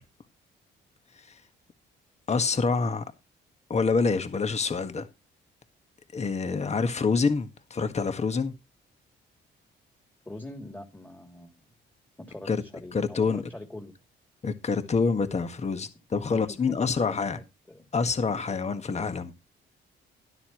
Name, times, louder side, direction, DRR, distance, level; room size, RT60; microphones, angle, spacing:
voice 1, 2.3-3.0 3.7-5.1 6.1-8.5 12.5-12.6 12.9-13.4 14.4-17.4 17.9-19.3, left 4 dB, 35° left, 1.6 m, -26 dB
voice 2, 10.2-11.6 12.3-13.9 16.3-17.4 17.7-17.8, left 1 dB, 10° left, 2.9 m, -43 dB
12.5 x 12.0 x 3.1 m
cardioid pair, 90°, 20 cm